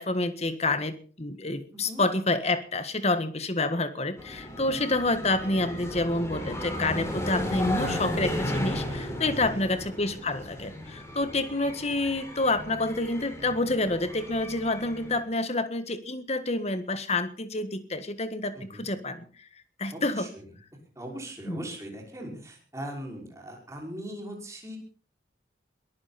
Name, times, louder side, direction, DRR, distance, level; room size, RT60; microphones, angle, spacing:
voice 1, 0.0-19.5 19.8-20.3 21.5-21.6, left 2 dB, 35° left, 11 dB, 1.6 m, -28 dB
voice 2, 1.7-2.0 4.6-4.9 9.2-9.7 18.5-18.9 19.9-20.4 21.0-24.8, right 1 dB, 15° right, 0 dB, 5.7 m, -40 dB
sound 1, 4.2-15.2, left 1 dB, 15° left, 4.8 m, -35 dB
22.0 x 15.0 x 4.3 m, 0.40 s
head